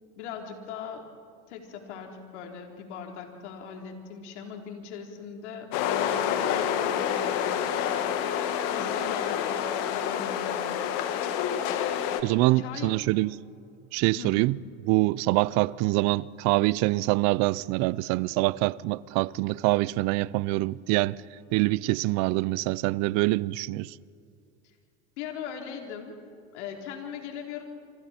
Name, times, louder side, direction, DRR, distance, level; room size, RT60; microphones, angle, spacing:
voice 1, 0.2-1.1 1.5-7.6 8.7-11.0 12.6-12.9 14.1-14.5 25.2-26.2 26.5-27.6, left 7 dB, 80° left, 3.8 m, -39 dB
sound 1, 5.7-12.2, left 9 dB, 60° left, 2.0 m, -28 dB
voice 2, 12.2-13.3 13.9-14.6 14.8-21.2 21.5-23.9, right 20 dB, 50° right, 0.6 m, -25 dB
27.0 x 27.0 x 4.4 m
supercardioid pair, 125°, 34 cm